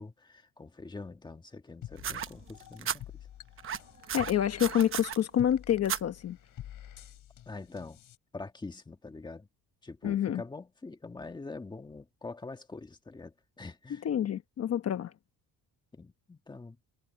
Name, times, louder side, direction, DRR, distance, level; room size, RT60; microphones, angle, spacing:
voice 1, 0.0-3.0 7.5-8.0 8.3-9.5 9.8-14.1 15.9-16.8, left 3 dB, 15° left, 1.7 m, -44 dB
sound 1, 1.8-8.2, left 12 dB, 65° left, 4.7 m, -48 dB
sound 2, 2.0-3.0 3.6-5.2 5.8-6.0 7.0-7.1, right 8 dB, 35° right, 0.9 m, -34 dB
voice 2, 4.1-6.4 10.0-10.4 14.0-15.1, left 10 dB, 45° left, 1.1 m, -28 dB
cardioid pair, 160°, 34 cm